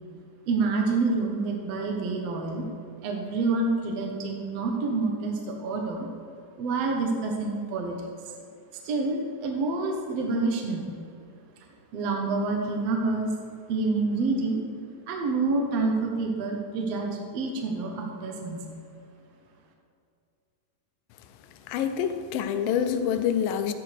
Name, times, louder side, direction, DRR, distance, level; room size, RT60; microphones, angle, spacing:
voice 1, 0.5-2.7 3.0-6.1 6.6-8.0 8.8-10.9 11.9-13.3 13.7-14.6 15.1-18.6, right 3 dB, 65° right, 1 dB, 1.7 m, -27 dB
voice 2, 21.7-23.7, left 8 dB, 90° left, 9 dB, 2.4 m, -26 dB
14.0 x 9.7 x 3.4 m, 2.4 s
omnidirectional pair, 4.0 m